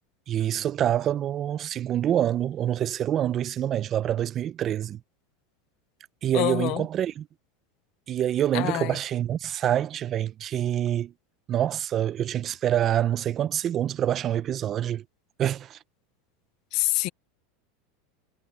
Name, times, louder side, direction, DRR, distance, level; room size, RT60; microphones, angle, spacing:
voice 1, 0.3-5.0 6.2-7.3 8.1-11.1 11.5-15.0 15.4-15.8, right 11 dB, 30° right, 0.5 m, -26 dB
voice 2, 6.3-6.8 8.5-9.0 16.7-17.1, left 22 dB, 50° left, 0.4 m, -26 dB
supercardioid pair, 145°, 0 cm